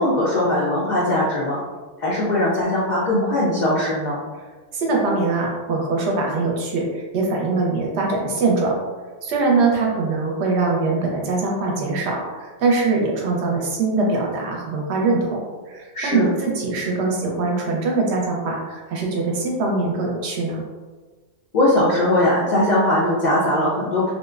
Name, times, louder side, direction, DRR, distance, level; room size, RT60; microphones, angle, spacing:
voice 1, 0.0-1.6 2.0-4.2 15.9-16.3 21.5-24.0, left 1 dB, 75° left, -6 dB, 0.4 m, -20 dB
voice 2, 4.7-8.7 9.2-20.6, right 3 dB, 65° right, -1 dB, 0.8 m, -22 dB
2.6 x 2.0 x 2.3 m, 1.4 s
omnidirectional pair, 1.3 m